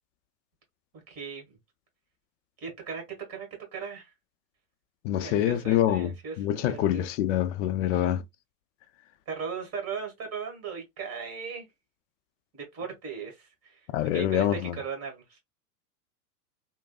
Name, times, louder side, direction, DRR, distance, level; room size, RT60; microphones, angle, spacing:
voice 1, 0.9-1.6 2.6-3.0 3.3-4.1 5.1-7.0 7.9-8.0 9.3-11.7 12.5-13.8 14.1-15.4, right 6 dB, 30° right, 1.4 m, -38 dB
voice 2, 5.0-8.2 13.9-14.8, left 12 dB, 50° left, 0.5 m, -26 dB
3.2 x 2.0 x 2.2 m
hypercardioid pair, 110°, 48 cm